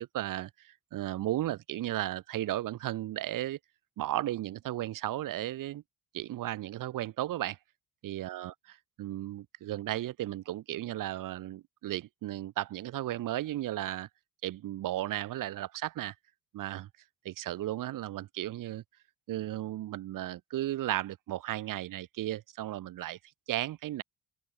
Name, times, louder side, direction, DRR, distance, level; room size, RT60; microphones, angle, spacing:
voice 1, 0.0-3.6 4.0-5.8 6.1-7.6 8.0-8.5 9.0-14.1 14.4-16.2 16.5-16.9 17.3-18.8 19.3-23.2 23.5-24.0, right 14 dB, 65° right, 5.2 m, -35 dB
open air
cardioid pair, 175°, 34 cm